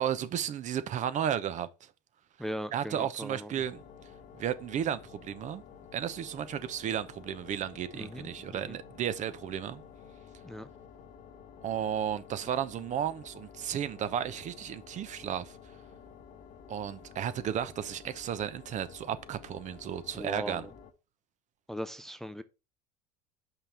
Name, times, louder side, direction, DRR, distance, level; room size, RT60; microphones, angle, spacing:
voice 1, 0.0-1.9 2.7-3.8 4.4-5.6 5.9-9.8 11.6-15.6 16.7-20.7, right 9 dB, 40° right, 0.8 m, -33 dB
voice 2, 2.4-3.5 7.9-8.8 10.4-10.7 20.1-20.7 21.7-22.4, equal, ahead, 0.6 m, -39 dB
sound 1, 3.6-20.9, left 7 dB, 50° left, 1.1 m, -52 dB
5.7 x 5.5 x 4.3 m
hypercardioid pair, 80°, 19 cm